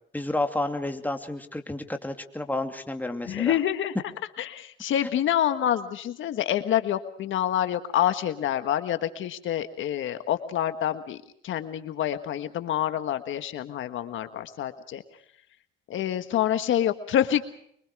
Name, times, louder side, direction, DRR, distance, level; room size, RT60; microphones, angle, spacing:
voice 1, 0.1-3.6, left 2 dB, 10° left, 5 dB, 2.6 m, -30 dB
voice 2, 3.3-3.9 4.4-11.2 11.4-15.0 15.9-17.5, left 11 dB, 75° left, 9 dB, 1.5 m, -27 dB
24.0 x 24.0 x 4.8 m, 0.67 s
cardioid pair, 90°, 20 cm